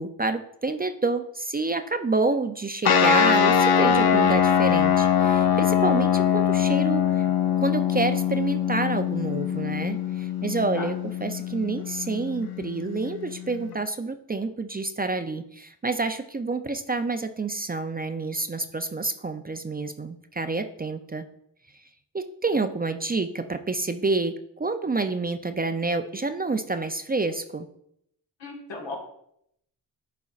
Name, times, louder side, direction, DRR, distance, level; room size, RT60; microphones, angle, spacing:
voice 1, 0.0-7.3 7.6-21.3 22.1-27.7, right 3 dB, 25° right, 8 dB, 0.4 m, -28 dB
sound 1, 2.8-13.8, left 8 dB, 60° left, 0.7 m, -23 dB
voice 2, 10.1-10.9 28.4-29.0, left 3 dB, 90° left, -1 dB, 1.7 m, -38 dB
11.0 x 4.1 x 2.4 m, 0.73 s
cardioid pair, 70°, 43 cm